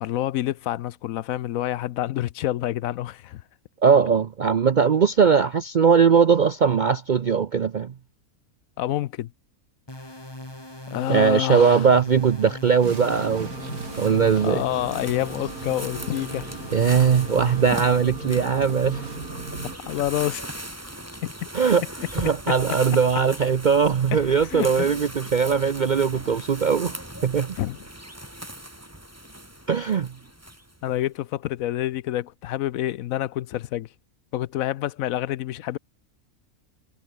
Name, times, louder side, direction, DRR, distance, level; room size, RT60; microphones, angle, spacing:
voice 1, 0.0-3.4 8.8-9.3 10.9-11.9 14.4-16.5 19.9-20.4 21.2-21.3 22.5-22.6 24.1-24.9 27.6-27.8 30.8-33.9 34.3-35.8, left 13 dB, 70° left, 1.0 m, -28 dB
voice 2, 3.8-7.9 11.1-13.5 14.0-14.6 16.7-19.1 21.5-21.8 22.1-26.9 27.2-27.6 29.7-30.1, right 6 dB, 55° right, 0.5 m, -20 dB
sound 1, 9.9-17.9, left 1 dB, 15° left, 3.3 m, -40 dB
sound 2, 12.8-19.8, right 3 dB, 85° right, 4.1 m, -36 dB
sound 3, 13.4-30.9, right 1 dB, 10° right, 3.9 m, -39 dB
omnidirectional pair, 1.6 m